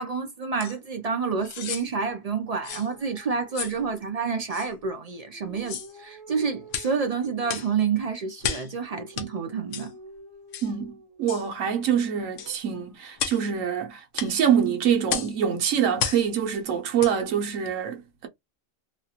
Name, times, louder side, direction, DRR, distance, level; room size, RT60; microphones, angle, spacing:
voice 1, 0.0-9.9, right 5 dB, 60° right, 0.4 m, -29 dB
sound 1, 0.6-0.8 1.4-1.9 2.6-2.9 3.5-3.8 4.5-4.7 5.6-5.9 6.7-6.9 7.5-7.7 8.4-8.7 9.2-9.3 9.7-9.9 10.5-10.7 11.3-11.5 12.4-12.5 13.2-13.4 14.2-14.3 15.1-15.3 16.0-16.3 17.0-17.2 17.6-17.7, left 8 dB, 70° left, 0.9 m, -32 dB
sound 2, 2.7-4.4 5.2-7.8 8.7-11.3 12.4-12.9, right 2 dB, 45° right, 1.0 m, -49 dB
voice 2, 10.6-18.3, right 8 dB, 85° right, 1.2 m, -25 dB
3.0 x 2.3 x 2.8 m
omnidirectional pair, 1.3 m